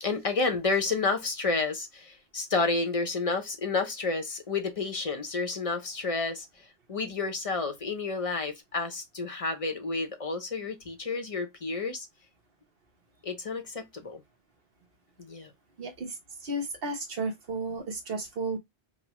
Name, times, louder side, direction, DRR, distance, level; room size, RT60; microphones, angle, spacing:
voice 1, 0.0-12.1 13.2-14.2 15.2-15.5, left 3 dB, 35° left, 0.7 m, -30 dB
voice 2, 15.8-16.1 16.4-18.6, right 2 dB, 60° right, 1.1 m, -33 dB
5.3 x 2.1 x 2.9 m
omnidirectional pair, 1.1 m